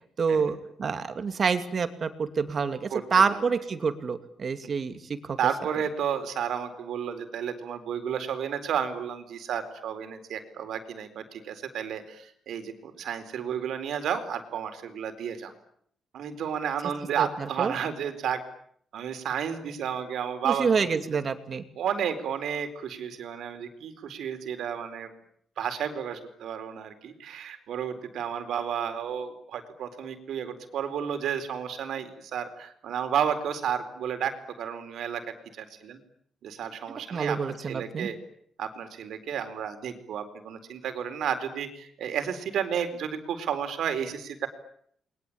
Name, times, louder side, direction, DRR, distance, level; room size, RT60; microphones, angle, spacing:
voice 1, 0.2-4.9 5.2-5.4 17.2-17.7 20.4-21.6 37.1-38.1, right 5 dB, 35° right, 9 dB, 2.5 m, -27 dB
voice 2, 2.9-3.4 5.4-15.5 16.1-18.4 18.9-20.9 21.8-25.1 25.6-35.2 35.5-36.0 36.4-37.4 37.7-38.2 38.6-44.5, right 8 dB, 65° right, 9 dB, 4.3 m, -32 dB
30.0 x 22.5 x 8.8 m, 0.67 s
cardioid pair, 160°, 0 cm